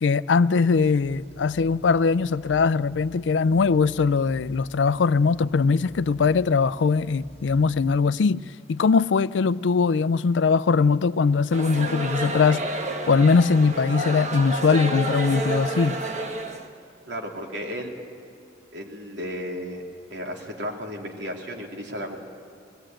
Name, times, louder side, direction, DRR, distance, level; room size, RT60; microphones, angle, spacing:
voice 1, 0.0-8.4 8.7-12.8 13.1-16.0, left 4 dB, 85° left, 0.4 m, -21 dB
sound 1, 0.7-8.0, left 1 dB, 30° left, 0.9 m, -48 dB
sound 2, 11.5-16.7, right 1 dB, 40° right, 1.3 m, -30 dB
voice 2, 17.1-17.9 18.7-19.8 20.1-22.2, equal, 90° right, 3.0 m, -34 dB
20.5 x 16.5 x 8.9 m
head